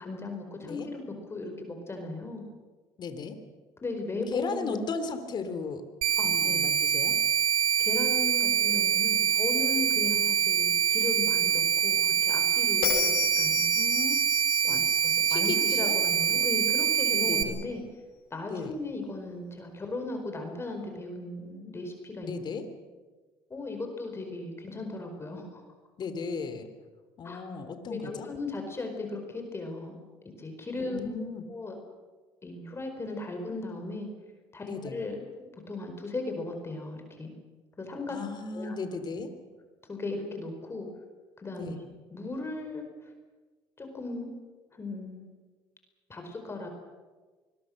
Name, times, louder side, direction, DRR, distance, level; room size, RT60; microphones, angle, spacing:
voice 1, 0.0-2.4 3.8-4.9 6.2-6.6 7.8-13.1 13.4-13.7 14.6-14.8 15.0-17.8 18.3-22.3 23.5-25.6 27.2-27.4 27.9-30.0 30.4-31.2 31.5-31.8 32.4-34.1 34.5-35.2 35.7-37.3 37.8-38.2 38.5-38.8 39.9-40.9 41.4-41.7 42.1-43.1 43.8-44.3 44.7-45.2 46.1-46.7, left 2 dB, 25° left, 4 dB, 4.8 m, -37 dB
voice 2, 3.0-3.4 4.3-5.8 6.2-7.2 13.7-14.2 14.7-14.9 15.3-15.9 17.1-17.6 18.5-18.7 22.2-22.6 26.0-26.7 27.2-28.3 30.8-31.4 34.6-35.0 38.1-39.3 41.6-41.8, left 4 dB, 45° left, 9 dB, 3.2 m, -36 dB
sound 1, 6.0-17.4, right 8 dB, 65° right, 2.1 m, -25 dB
Bell, 12.8-16.1, left 10 dB, 80° left, 6.5 m, -34 dB
25.5 x 21.5 x 6.6 m, 1.3 s
supercardioid pair, 95°, 10 cm